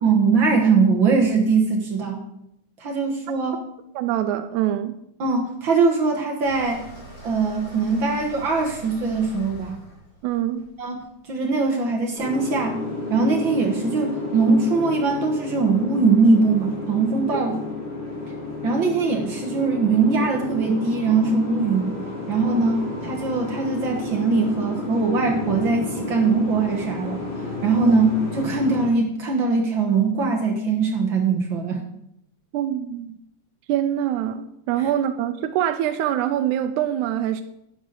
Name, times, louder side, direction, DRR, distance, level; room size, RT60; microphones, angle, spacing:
voice 1, 0.0-2.2 2.8-3.6 5.2-6.8 7.2-9.8 10.8-11.0 11.3-12.8 13.1-17.6 18.6-22.0 22.3-27.2 27.6-31.8 34.8-34.9, right 4 dB, 55° right, 1 dB, 1.3 m, -21 dB
voice 2, 4.0-5.0 10.2-10.6 17.3-17.4 27.9-28.0 32.5-33.2 33.7-37.4, right 11 dB, 80° right, 7 dB, 1.9 m, -24 dB
sound 1, 6.4-11.4, right 1 dB, 40° left, 3.9 m, -43 dB
Boat Water vehicle, 12.1-28.9, left 2 dB, 60° left, 5.2 m, -31 dB
12.0 x 9.9 x 4.0 m, 0.78 s
omnidirectional pair, 3.7 m